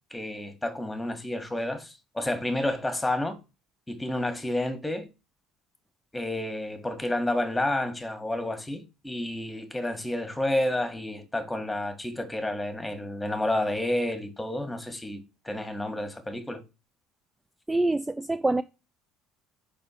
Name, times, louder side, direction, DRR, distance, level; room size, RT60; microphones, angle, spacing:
voice 1, 0.1-3.4 3.9-5.1 6.1-16.6, left 1 dB, 10° left, 1.6 m, -30 dB
voice 2, 17.7-18.6, right 2 dB, 10° right, 0.3 m, -25 dB
5.3 x 4.3 x 4.3 m
hypercardioid pair, 65°, 0 cm